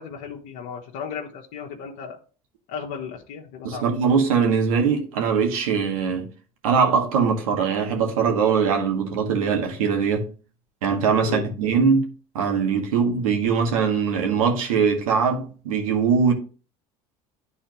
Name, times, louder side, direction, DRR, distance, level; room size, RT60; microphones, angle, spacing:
voice 1, 0.0-2.2 2.7-3.9 11.2-11.5, left 7 dB, 75° left, 1.3 m, -34 dB
voice 2, 3.6-6.3 6.6-10.3 10.8-12.1 12.3-16.3, right 6 dB, 85° right, 1.8 m, -21 dB
11.0 x 4.3 x 3.0 m
hypercardioid pair, 80°, 17 cm